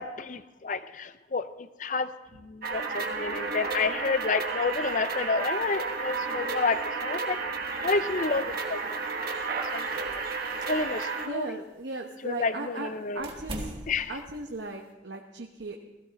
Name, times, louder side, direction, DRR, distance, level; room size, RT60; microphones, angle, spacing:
voice 1, 0.0-2.1 2.4-7.4 7.8-8.8 9.7-10.1 10.7-11.5 12.2-13.2 13.9-14.1, left 4 dB, 45° left, 13 dB, 0.6 m, -30 dB
sound 1, 2.6-11.3, right 4 dB, 50° right, 1.4 m, -32 dB
sound 2, 8.0-14.9, right 1 dB, 30° right, 1.8 m, -45 dB
voice 2, 11.2-12.9 13.1-13.7 14.1-15.8, right 2 dB, 75° right, 2 dB, 1.1 m, -37 dB
16.5 x 15.5 x 4.1 m, 1.0 s
head